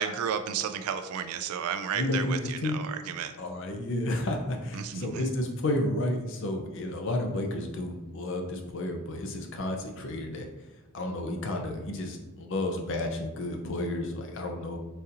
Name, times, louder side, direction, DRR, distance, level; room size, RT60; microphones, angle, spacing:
voice 1, 0.0-3.3 4.7-5.2, right 7 dB, 75° right, 10 dB, 0.3 m, -32 dB
voice 2, 1.9-2.8 3.4-10.5 10.9-14.8, left 1 dB, 60° left, 3 dB, 0.5 m, -31 dB
4.0 x 2.7 x 2.5 m, 1.0 s
head